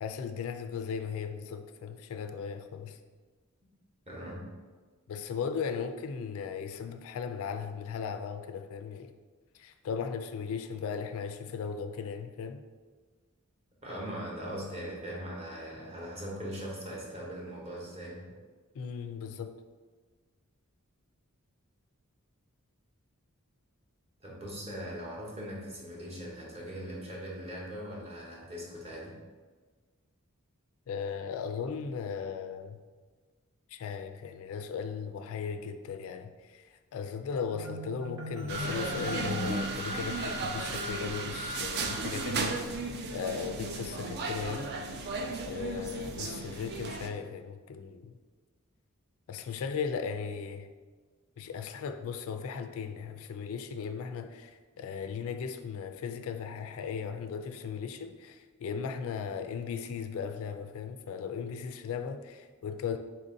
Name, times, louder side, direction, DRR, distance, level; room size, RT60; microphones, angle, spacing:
voice 1, 0.0-3.0 5.1-9.1 9.5-12.6 18.7-19.6 30.9-32.8 33.7-44.7 45.5-48.2 49.3-50.7 51.4-63.0, left 6 dB, 70° left, 9 dB, 0.3 m, -37 dB
voice 2, 4.1-4.5 13.8-18.3 24.2-29.1, equal, 30° right, -4 dB, 1.0 m, -40 dB
Marimba xylophone, 37.5-40.8, right 1 dB, 70° right, 0.9 m, -39 dB
sound 1, 38.5-47.1, right 3 dB, 50° right, 0.4 m, -35 dB
4.3 x 2.6 x 3.7 m, 1.4 s
head